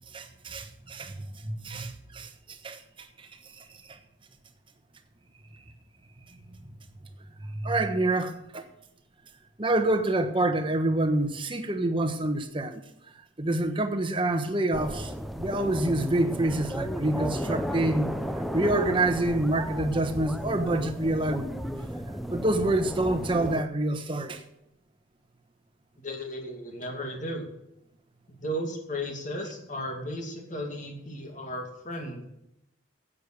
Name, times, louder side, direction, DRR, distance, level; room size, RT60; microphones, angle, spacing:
voice 1, 0.1-4.0 6.3-6.4 7.5-8.6 9.6-12.8 13.4-15.1 15.4-18.1 18.3-21.6 22.3-24.4, right 2 dB, 25° right, 1.2 m, -27 dB
sound 1, 14.7-23.6, equal, ahead, 0.6 m, -34 dB
voice 2, 26.0-27.5 28.3-32.3, equal, 40° left, 2.3 m, -35 dB
10.5 x 8.6 x 6.5 m
head